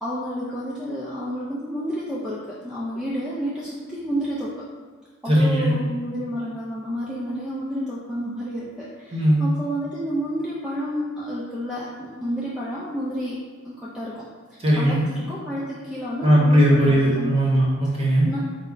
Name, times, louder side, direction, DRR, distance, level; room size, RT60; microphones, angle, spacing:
voice 1, 0.0-2.4 2.6-3.7 4.0-4.5 5.2-8.9 9.4-13.3 13.9-14.1 14.8-17.4 18.3-18.4, equal, 5° right, -8 dB, 0.4 m, -30 dB
voice 2, 5.2-5.7 9.1-9.4 14.6-15.1 16.2-18.3, right 1 dB, 25° right, -4 dB, 0.8 m, -18 dB
4.4 x 2.1 x 3.7 m, 1.5 s
head